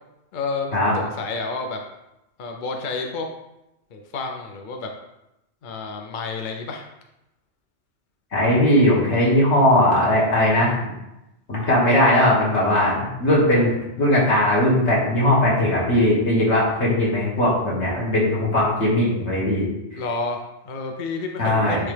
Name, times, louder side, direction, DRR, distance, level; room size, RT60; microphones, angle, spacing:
voice 1, 0.3-1.8 2.4-3.3 3.9-4.9 5.6-6.8 19.9-21.9, left 3 dB, 50° left, 3 dB, 0.8 m, -30 dB
voice 2, 8.3-10.9 11.5-20.0 21.4-21.8, left 1 dB, 85° left, -6 dB, 2.3 m, -19 dB
9.7 x 3.3 x 3.3 m, 0.91 s
omnidirectional pair, 1.1 m